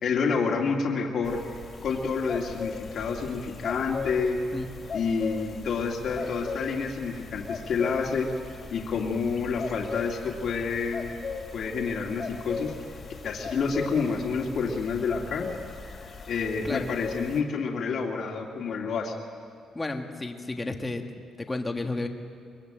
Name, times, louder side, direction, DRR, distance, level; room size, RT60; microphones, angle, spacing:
voice 1, 0.0-1.4 1.8-4.4 4.9-8.3 8.7-11.1 11.5-12.7 13.2-15.5 16.3-19.1, left 5 dB, 50° left, -1 dB, 2.4 m, -28 dB
sound 1, 1.2-17.4, left 4 dB, 30° left, 2.5 m, -39 dB
voice 2, 19.7-22.1, left 2 dB, 15° left, 4 dB, 1.6 m, -32 dB
23.0 x 23.0 x 9.0 m, 2.3 s
cardioid pair, 165°, 0 cm